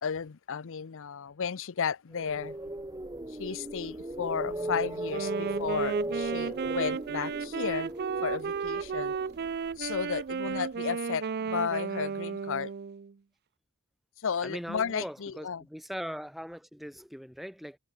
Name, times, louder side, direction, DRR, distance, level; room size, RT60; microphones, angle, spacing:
voice 1, 0.0-2.6 3.4-7.9 8.2-9.1 9.8-12.7 14.2-15.7, left 6 dB, 65° left, 0.6 m, -33 dB
sound 1, 2.1-10.2, right 1 dB, 15° right, 1.5 m, -37 dB
Wind instrument woodwind instrument, 5.1-13.1, right 6 dB, 50° right, 0.5 m, -33 dB
voice 2, 14.4-17.8, equal, ahead, 1.5 m, -40 dB
head